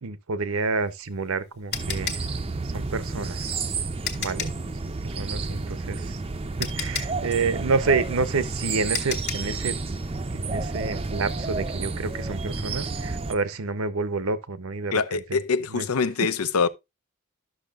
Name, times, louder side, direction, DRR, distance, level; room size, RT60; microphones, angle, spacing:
voice 1, 0.0-2.2 2.6-3.5 4.2-4.5 4.8-6.2 6.6-9.8 10.3-15.4 15.7-15.9, right 4 dB, 70° right, 0.8 m, -29 dB
sound 1, 0.8-4.7 6.1-6.2 6.6-9.6, left 7 dB, 50° left, 1.5 m, -34 dB
sound 2, 1.7-13.3, right 3 dB, 25° right, 0.5 m, -31 dB
voice 2, 14.9-16.7, left 5 dB, 80° left, 0.6 m, -24 dB
12.5 x 6.4 x 2.4 m
head